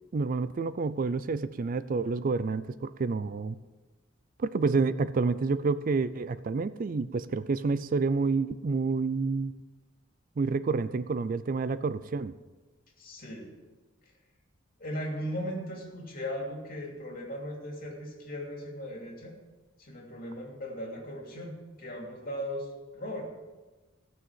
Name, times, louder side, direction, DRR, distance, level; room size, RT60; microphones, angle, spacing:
voice 1, 0.1-3.6 4.4-9.5 10.4-12.3, right 4 dB, 45° right, 15 dB, 0.4 m, -29 dB
voice 2, 13.0-13.5 14.8-19.3 19.8-23.3, equal, 45° left, -1 dB, 2.9 m, -38 dB
15.5 x 6.3 x 7.5 m, 1.2 s
head